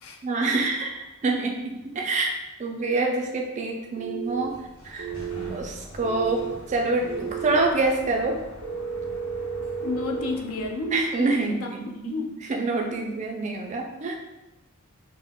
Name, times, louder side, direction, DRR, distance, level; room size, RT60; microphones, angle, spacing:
voice 1, 0.2-4.5 4.8-5.1 5.5-8.4 10.9-12.1 12.5-14.1, right 3 dB, 30° right, 1 dB, 0.3 m, -26 dB
Sliding door, 4.0-11.4, equal, 55° left, 0.8 m, -44 dB
sound 1, 4.0-4.5 5.0-5.5 6.0-6.5 7.0-7.5 8.6-10.3, right 7 dB, 90° right, 0.5 m, -32 dB
voice 2, 9.8-12.3, left 3 dB, 75° left, 3 dB, 0.4 m, -32 dB
3.5 x 2.0 x 2.2 m, 1.0 s
head